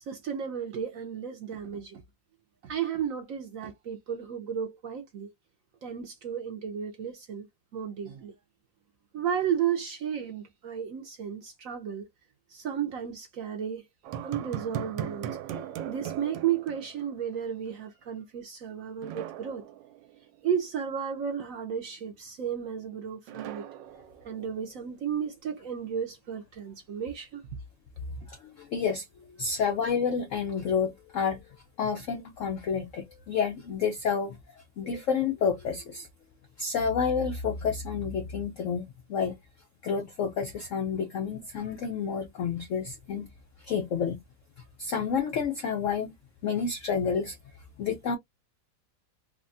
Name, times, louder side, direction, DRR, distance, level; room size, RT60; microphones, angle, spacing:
voice 1, 0.1-2.0 2.6-5.3 5.8-7.5 7.7-8.3 9.1-12.1 12.5-13.8 14.2-15.4 15.9-19.6 20.4-23.7 24.2-27.4 28.2-28.3, right 8 dB, 70° right, 0.8 m, -33 dB
sound 1, 14.0-17.4 17.7-17.8 19.0-20.4 23.3-24.8, right 10 dB, 90° right, 1.3 m, -38 dB
voice 2, 28.3-29.1 29.4-31.4 31.8-34.4 34.8-36.1 36.6-39.4 39.8-43.3 43.6-44.2 44.8-46.1 46.4-47.4 47.8-48.2, left 6 dB, 85° left, 0.6 m, -29 dB
3.4 x 2.2 x 2.5 m
omnidirectional pair, 1.9 m